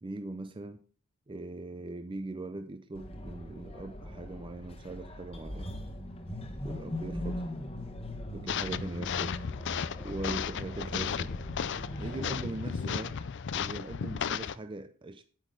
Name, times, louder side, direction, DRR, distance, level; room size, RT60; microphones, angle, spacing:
voice 1, 0.0-0.8 1.3-5.8 6.6-7.5 8.3-9.4 10.0-11.4 12.0-13.2 13.5-15.2, right 2 dB, 20° right, 0.5 m, -40 dB
sound 1, 2.9-13.2, left 1 dB, 25° left, 1.2 m, -40 dB
sound 2, 8.5-14.6, left 7 dB, 55° left, 0.4 m, -35 dB
9.2 x 8.2 x 3.8 m
head